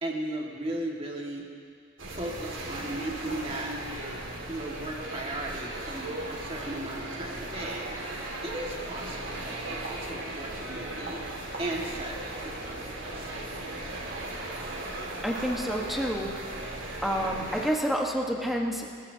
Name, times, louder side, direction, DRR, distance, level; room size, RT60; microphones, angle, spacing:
voice 1, 0.0-1.4 2.1-3.7 4.5-7.9 8.4-11.2 11.6-12.2 12.4-13.3, right 1 dB, 30° right, -2 dB, 1.9 m, -36 dB
sound 1, 2.0-17.7, right 1 dB, 85° right, 2.2 m, -37 dB
voice 2, 15.2-16.3 17.0-18.9, equal, ahead, -1 dB, 1.3 m, -28 dB
25.0 x 15.0 x 2.8 m, 2.2 s
head